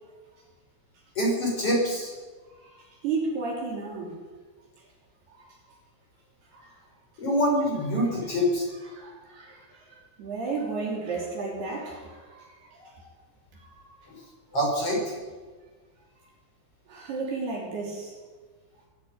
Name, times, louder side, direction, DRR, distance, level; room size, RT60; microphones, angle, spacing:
voice 1, 1.1-2.1 7.2-8.6 14.1-14.2 14.5-15.2, equal, 25° left, -2 dB, 6.8 m, -25 dB
voice 2, 2.6-4.2 5.3-5.5 6.5-6.7 8.9-13.1 13.6-13.8 16.9-18.2, right 4 dB, 55° right, -1 dB, 4.7 m, -34 dB
22.5 x 13.0 x 9.6 m, 1.4 s
omnidirectional pair, 6.0 m